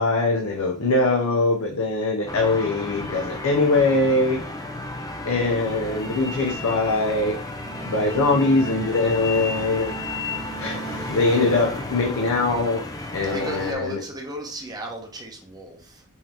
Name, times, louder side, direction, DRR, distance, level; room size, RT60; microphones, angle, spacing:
voice 1, 0.0-4.4 5.2-7.4 7.8-9.9 10.6-12.9 13.1-14.0, left 2 dB, 75° left, 0.7 m, -22 dB
sound 1, 2.3-13.7, left 2 dB, 15° left, 0.5 m, -33 dB
Bowed string instrument, 7.5-12.2, right 4 dB, 90° right, 1.3 m, -38 dB
voice 2, 13.3-16.0, right 1 dB, 20° right, 0.9 m, -35 dB
5.5 x 2.9 x 3.3 m
head